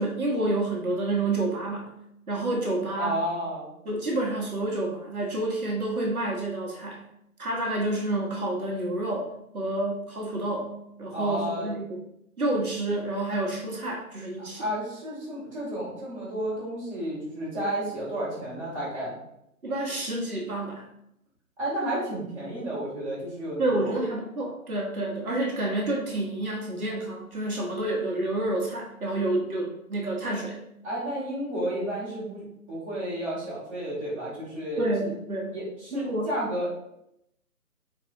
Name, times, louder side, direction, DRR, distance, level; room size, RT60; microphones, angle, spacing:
voice 1, 0.0-2.0 2.3-3.2 3.8-7.0 7.4-12.0 12.4-14.7 19.6-20.9 23.6-30.6 34.8-35.6 35.9-36.3, right 2 dB, 75° right, -2 dB, 1.1 m, -29 dB
voice 2, 3.0-3.7 11.1-11.7 14.5-19.1 21.6-24.0 30.8-35.1 35.5-36.7, right 1 dB, 20° right, -10 dB, 1.4 m, -32 dB
3.9 x 2.8 x 2.6 m, 0.79 s
figure-of-eight pair, 145°, 44 cm